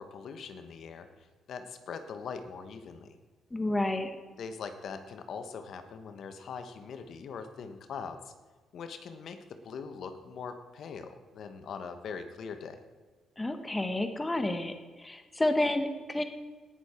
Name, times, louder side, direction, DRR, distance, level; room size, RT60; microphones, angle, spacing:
voice 1, 0.0-3.2 4.4-8.3 8.7-12.8, left 5 dB, 65° left, 8 dB, 1.1 m, -42 dB
voice 2, 3.5-4.2 13.4-16.2, left 1 dB, 15° left, 7 dB, 1.2 m, -30 dB
18.0 x 6.7 x 4.4 m, 1.3 s
cardioid pair, 90°, 0 cm